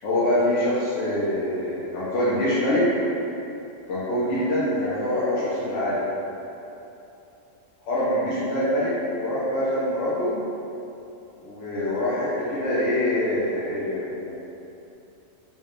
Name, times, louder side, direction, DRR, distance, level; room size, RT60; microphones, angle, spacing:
voice 1, 0.0-2.9 3.9-6.1 7.9-10.3 11.4-14.3, left 1 dB, 85° left, -10 dB, 1.0 m, -24 dB
4.4 x 2.3 x 3.0 m, 2.9 s
omnidirectional pair, 1.2 m